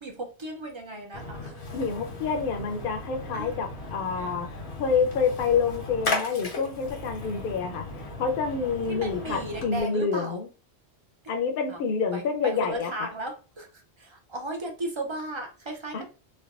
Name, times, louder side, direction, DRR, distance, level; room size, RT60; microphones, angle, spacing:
voice 1, 0.0-1.7 3.3-3.6 8.9-10.4 11.2-11.3 11.7-11.8 12.1-13.7 14.0-16.0, right 2 dB, 40° right, 2 dB, 0.4 m, -36 dB
Splash splatter, 1.1-9.8, left 2 dB, 85° left, 1.2 m, -36 dB
voice 2, 1.7-4.5 4.8-7.8 8.2-10.5 11.3-13.1 15.9-16.0, left 5 dB, 60° left, 5 dB, 0.7 m, -27 dB
3.3 x 2.2 x 2.4 m, 0.33 s
omnidirectional pair, 1.1 m